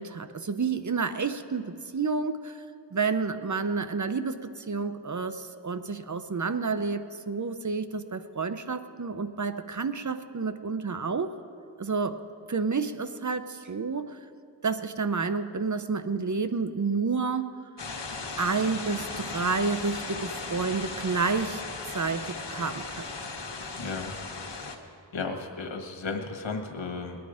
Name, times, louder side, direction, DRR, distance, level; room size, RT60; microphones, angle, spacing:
voice 1, 0.0-2.6 2.9-11.3 11.8-12.2 12.5-14.2 14.6-17.7 18.4-23.1, right 4 dB, 40° right, 11 dB, 0.7 m, -30 dB
sound 1, 17.8-24.8, left 3 dB, 65° left, 1.4 m, -37 dB
voice 2, 23.8-24.1 25.1-27.2, left 4 dB, 85° left, 5 dB, 1.4 m, -34 dB
21.0 x 9.6 x 5.0 m, 2.5 s
cardioid pair, 40°, 45 cm